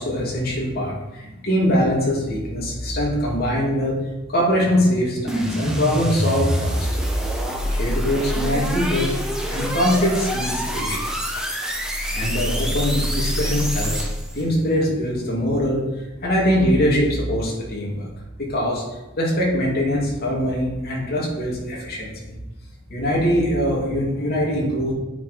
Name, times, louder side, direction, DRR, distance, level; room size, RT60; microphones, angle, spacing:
voice 1, 0.0-3.9 4.3-7.0 7.7-9.1 9.5-11.3 12.1-14.1 14.3-15.8 16.2-18.1 18.4-18.8 19.2-22.3 22.9-24.9, equal, 50° left, -3 dB, 3.0 m, -22 dB
sound 1, 5.3-14.4, equal, 5° right, 1.4 m, -25 dB
9.1 x 6.7 x 5.4 m, 1.1 s
head